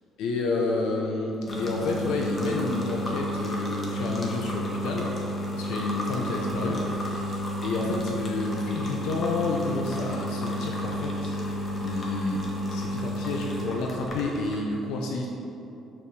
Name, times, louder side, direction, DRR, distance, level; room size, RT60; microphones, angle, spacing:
voice 1, 0.2-5.1 5.5-11.4 11.8-12.4 12.7-15.3, left 3 dB, 90° left, 0 dB, 0.7 m, -30 dB
sound 1, 1.5-14.5, equal, 35° left, 1.4 m, -31 dB
5.6 x 4.8 x 6.3 m, 2.8 s
cardioid pair, 110°, 0 cm